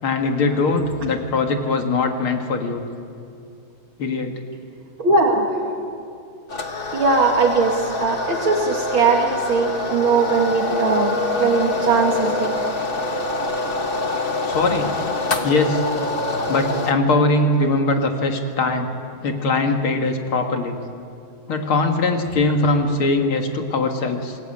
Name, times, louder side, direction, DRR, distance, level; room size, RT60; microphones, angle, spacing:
voice 1, 0.0-2.8 4.0-4.4 14.5-14.9 15.4-15.8 16.5-18.9 19.2-20.8 21.5-24.4, left 3 dB, 75° left, 4 dB, 2.7 m, -21 dB
voice 2, 5.0-5.5 6.9-12.5 16.5-16.6, right 4 dB, 70° right, 1 dB, 2.9 m, -20 dB
sound 1, 6.5-16.9, left 3 dB, 30° left, 1.2 m, -25 dB
27.5 x 19.0 x 8.6 m, 2.4 s
omnidirectional pair, 2.3 m